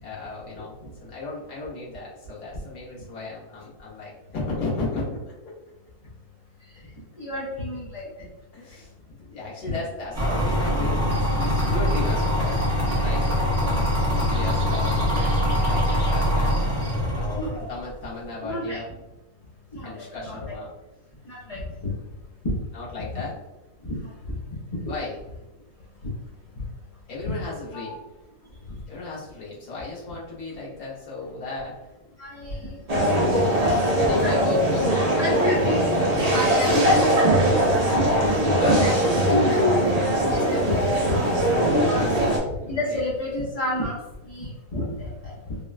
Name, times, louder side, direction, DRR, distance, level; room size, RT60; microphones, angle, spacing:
voice 1, 0.0-5.3 8.5-8.9 9.2-12.6 13.0-13.2 13.6-16.6 17.1-19.0 19.8-20.7 21.9-22.0 22.7-23.4 24.8-25.2 27.1-28.0 28.9-31.8 32.3-33.2 33.8-36.4 38.3-39.2 41.7-43.0, left 3 dB, 85° left, -6 dB, 1.6 m, -34 dB
voice 2, 7.2-8.1 17.3-17.7 18.4-18.8 19.7-20.5 21.2-21.6 22.4-22.5 23.8-24.0 24.3-24.4 27.7-27.9 32.2-32.8 33.2-33.3 33.6-33.7 34.2-34.5 35.2-35.9 36.3-37.2 38.0-38.1 38.6-39.0 39.3-39.6 40.3-41.2 41.9-42.1 42.7-44.0 44.3-45.6, left 1 dB, 55° left, -8 dB, 0.4 m, -30 dB
sound 1, 10.1-17.6, equal, 10° right, 0.9 m, -23 dB
sound 2, 11.1-16.9, right 1 dB, 55° right, 1.1 m, -44 dB
sound 3, 32.9-42.4, right 1 dB, 75° right, 0.3 m, -21 dB
3.6 x 2.1 x 2.4 m, 1.0 s
omnidirectional pair, 1.6 m